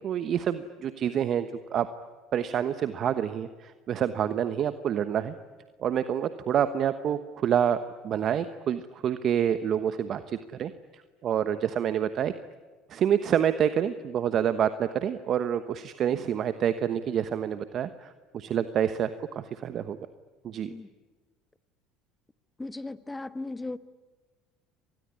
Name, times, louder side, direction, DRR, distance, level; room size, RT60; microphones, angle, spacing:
voice 1, 0.0-1.9 2.3-5.3 5.8-12.3 12.9-20.0 20.4-20.7, right 9 dB, 50° right, 11 dB, 1.1 m, -28 dB
voice 2, 22.6-23.8, left 2 dB, 15° left, 13 dB, 1.3 m, -36 dB
26.0 x 20.0 x 9.9 m, 1.4 s
hypercardioid pair, 80°, 0 cm